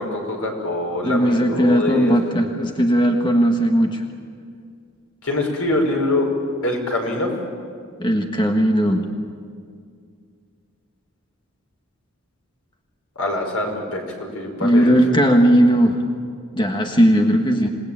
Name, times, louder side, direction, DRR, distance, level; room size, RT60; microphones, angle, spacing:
voice 1, 0.0-2.1 5.2-6.3 6.6-7.3 13.2-14.0 14.3-14.9 15.2-15.4, left 2 dB, 85° left, 2 dB, 5.3 m, -24 dB
voice 2, 1.0-4.0 8.0-9.1 14.6-16.0 16.5-17.7, equal, 20° left, 3 dB, 1.5 m, -17 dB
27.0 x 19.5 x 8.9 m, 2.2 s
head